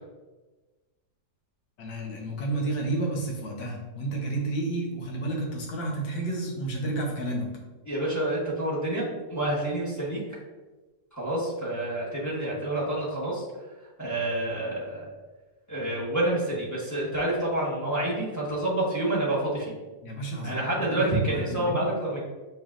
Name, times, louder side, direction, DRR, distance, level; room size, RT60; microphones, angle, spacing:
voice 1, 1.8-7.5 20.0-21.9, right 2 dB, 90° left, -1 dB, 1.6 m, -31 dB
voice 2, 7.9-10.2 11.1-13.4 14.0-15.1 15.7-19.7 20.4-22.2, right 1 dB, 15° left, -6 dB, 1.0 m, -28 dB
6.0 x 3.2 x 2.5 m, 1.2 s
omnidirectional pair, 1.8 m